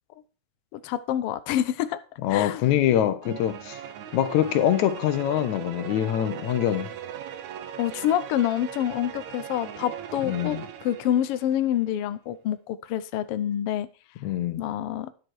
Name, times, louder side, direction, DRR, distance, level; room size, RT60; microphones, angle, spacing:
voice 1, 0.7-2.0 2.3-2.8 3.3-3.4 7.8-13.9 14.6-15.1, left 11 dB, 90° left, 1.2 m, -27 dB
voice 2, 2.2-3.8 4.1-6.9 10.3-10.6 14.2-14.6, left 11 dB, 75° left, 2.2 m, -24 dB
sound 1, 3.2-11.8, right 9 dB, 75° right, 2.2 m, -39 dB
10.5 x 7.8 x 4.6 m
omnidirectional pair, 3.5 m